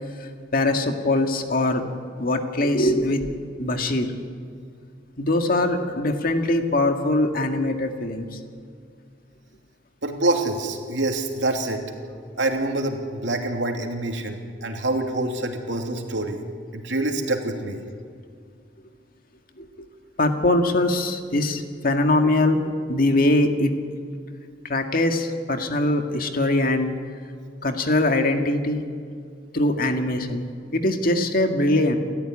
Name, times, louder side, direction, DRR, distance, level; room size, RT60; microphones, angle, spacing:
voice 1, 0.2-1.8 2.2-3.2 3.6-4.1 5.2-8.4 19.6-19.7 20.2-22.6 22.9-23.7 24.6-26.9 27.6-28.8 29.5-30.5 30.7-32.0, left 2 dB, 50° left, 5 dB, 2.0 m, -22 dB
voice 2, 10.0-11.8 12.4-16.4 16.7-17.8, right 2 dB, 80° right, 3 dB, 2.9 m, -26 dB
29.5 x 14.0 x 9.9 m, 2.2 s
head